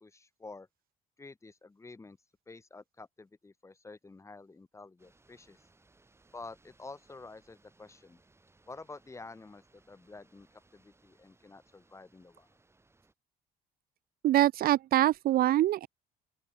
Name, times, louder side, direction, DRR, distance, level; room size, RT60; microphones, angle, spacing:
voice 1, 0.0-0.7 1.2-2.2 2.5-5.6 6.3-8.2 8.7-12.5, left 3 dB, 15° left, 2.1 m, -49 dB
Heavy wind chimes trees foliage rustling, 5.0-13.1, right 2 dB, 15° right, 7.2 m, -66 dB
voice 2, 14.2-15.9, right 14 dB, 60° right, 0.7 m, -24 dB
open air
cardioid pair, 110°, 17 cm